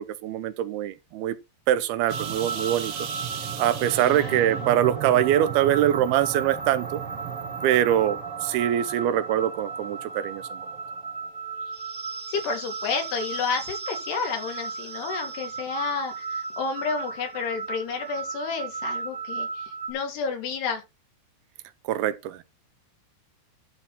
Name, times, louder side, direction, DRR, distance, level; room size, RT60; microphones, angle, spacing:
voice 1, 0.0-1.4 1.7-2.9 3.6-7.0 7.6-10.7 21.9-22.4, right 11 dB, 80° right, 2.6 m, -24 dB
sound 1, 2.1-19.9, right 5 dB, 55° right, 1.6 m, -34 dB
voice 2, 4.1-4.8 12.3-20.8, left 5 dB, 85° left, 4.5 m, -31 dB
12.0 x 4.2 x 5.7 m
omnidirectional pair, 4.6 m